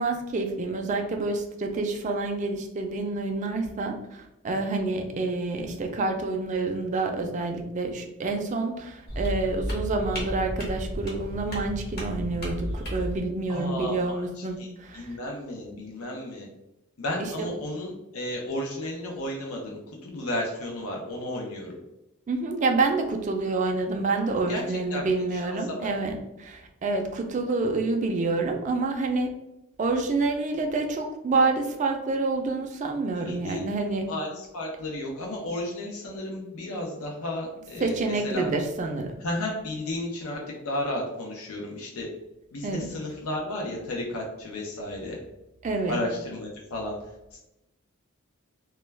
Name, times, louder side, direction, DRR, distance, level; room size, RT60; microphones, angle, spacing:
voice 1, 0.0-15.2 17.4-17.5 22.3-29.3 29.8-34.1 37.8-39.1 42.6-42.9 45.6-46.0, right 3 dB, 35° right, 4 dB, 0.3 m, -28 dB
sound 1, 9.1-13.2, equal, 50° left, 1.0 m, -33 dB
voice 2, 13.5-14.7 14.9-16.5 17.0-21.8 24.5-24.6 24.9-25.0 25.3-25.9 33.1-33.6 34.1-38.5 39.2-42.1 42.5-45.2 45.9-47.0 47.3-47.4, left 1 dB, 90° left, -1 dB, 0.6 m, -33 dB
2.2 x 2.2 x 3.2 m, 0.89 s
head